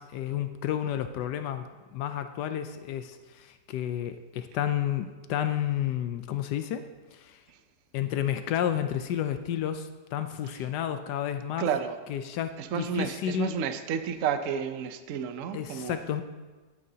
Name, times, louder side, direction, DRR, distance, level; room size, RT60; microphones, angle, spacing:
voice 1, 0.0-6.8 7.1-7.4 7.9-11.7 12.1-13.5 15.5-16.2, left 10 dB, 85° left, 8 dB, 1.2 m, -31 dB
voice 2, 11.6-12.0 12.6-16.0, right 7 dB, 60° right, 9 dB, 0.9 m, -31 dB
16.0 x 9.4 x 2.8 m, 1.3 s
omnidirectional pair, 1.7 m